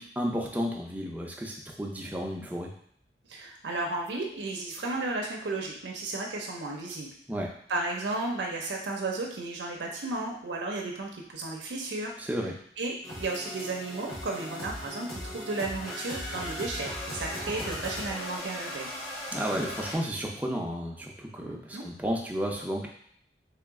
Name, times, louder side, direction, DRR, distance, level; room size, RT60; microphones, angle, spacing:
voice 1, 0.0-2.7 7.3-7.5 12.2-12.5 19.3-22.9, equal, 10° right, -1 dB, 0.5 m, -32 dB
voice 2, 3.3-7.1 7.7-12.1 12.8-18.9 21.4-21.8, right 2 dB, 85° right, 0 dB, 0.6 m, -34 dB
sound 1, 13.0-20.0, left 1 dB, 55° left, 1.5 m, -37 dB
3.1 x 2.9 x 3.6 m, 0.64 s
head